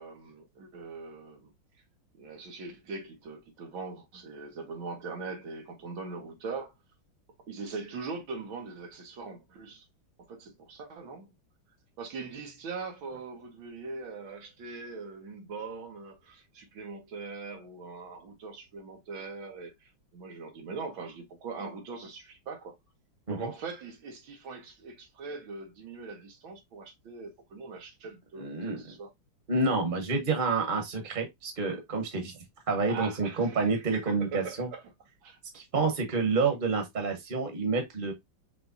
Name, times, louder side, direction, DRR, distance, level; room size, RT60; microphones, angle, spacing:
voice 1, 0.0-1.5 2.2-6.7 7.5-9.9 10.3-11.3 12.0-22.8 23.3-29.1 32.9-34.9 35.2-35.4, right 4 dB, 90° right, 2.0 m, -41 dB
voice 2, 28.4-28.8 29.5-32.3 32.7-34.7 35.5-38.1, right 4 dB, 30° right, 1.1 m, -28 dB
5.4 x 3.1 x 2.6 m
omnidirectional pair, 2.1 m